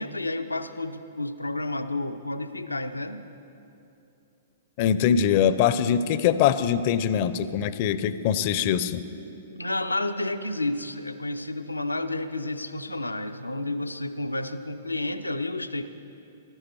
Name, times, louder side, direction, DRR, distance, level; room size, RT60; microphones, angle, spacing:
voice 1, 0.0-3.2 9.6-15.9, left 2 dB, 90° left, 10 dB, 0.5 m, -31 dB
voice 2, 4.8-9.0, left 8 dB, 45° left, 14 dB, 0.5 m, -23 dB
13.5 x 13.0 x 4.6 m, 2.8 s
figure-of-eight pair, 110°, 0 cm